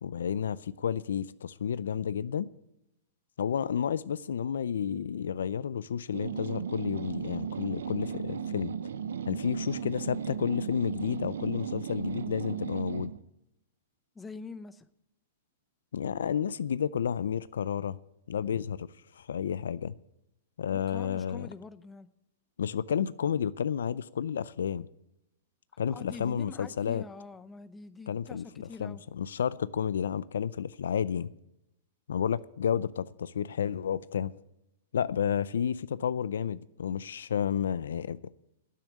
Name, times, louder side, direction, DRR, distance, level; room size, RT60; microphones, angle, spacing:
voice 1, 0.0-2.5 3.4-8.7 9.3-13.1 15.9-18.0 18.3-18.9 19.2-19.9 20.6-21.5 22.6-24.9 25.8-27.0 28.1-31.3 32.1-34.3 34.9-38.2, left 8 dB, 80° left, 0.5 m, -31 dB
sound 1, 6.1-13.2, right 7 dB, 85° right, 0.7 m, -36 dB
voice 2, 14.1-14.9 20.7-22.1 25.9-29.0, left 4 dB, 10° left, 0.7 m, -45 dB
9.3 x 8.7 x 8.5 m
hypercardioid pair, 135°, 0 cm